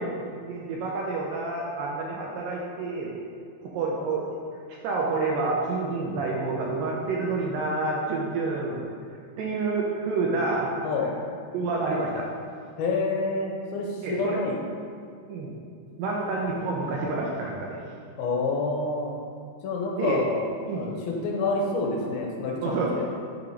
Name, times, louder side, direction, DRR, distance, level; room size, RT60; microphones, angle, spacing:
voice 1, 0.0-3.1 3.6-4.3 4.8-8.9 9.4-10.7 11.5-12.3 14.0-14.4 15.3-15.5 16.0-17.8 20.0-20.2 20.7-20.9 22.6-22.9, right 3 dB, 75° right, -2 dB, 2.1 m, -28 dB
voice 2, 12.8-14.6 18.2-19.1 19.6-20.5 20.7-23.1, left 3 dB, 80° left, 0 dB, 2.5 m, -28 dB
6.1 x 5.8 x 4.5 m, 2.2 s
omnidirectional pair, 4.5 m